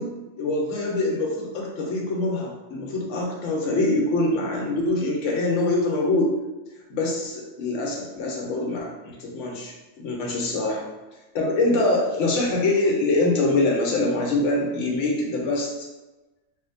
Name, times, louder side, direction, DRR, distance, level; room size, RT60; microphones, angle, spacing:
voice 1, 0.4-6.4 6.9-10.9 11.3-15.7, left 2 dB, 65° left, -1 dB, 1.0 m, -24 dB
3.1 x 2.8 x 2.5 m, 1.1 s
omnidirectional pair, 1.4 m